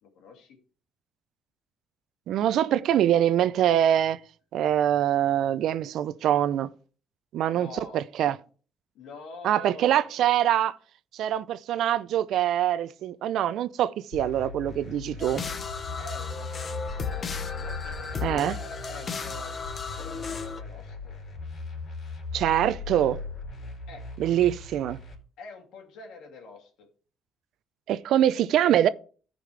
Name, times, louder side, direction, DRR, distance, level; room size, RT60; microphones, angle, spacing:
voice 1, 0.0-0.6 7.5-8.0 8.9-10.1 16.0-17.3 17.5-19.5 20.0-21.2 23.9-24.0 25.4-26.9, left 3 dB, 85° left, 2.7 m, -46 dB
voice 2, 2.3-4.2 4.5-6.7 7.3-8.4 9.4-10.8 11.1-15.4 18.2-18.6 22.3-23.2 24.2-25.0 27.9-28.9, right 11 dB, 75° right, 0.5 m, -24 dB
sound 1, 14.1-25.1, left 3 dB, 60° left, 4.0 m, -39 dB
sound 2, 15.2-20.6, left 5 dB, 40° left, 1.1 m, -35 dB
14.5 x 5.2 x 3.3 m
cardioid pair, 95°, 0 cm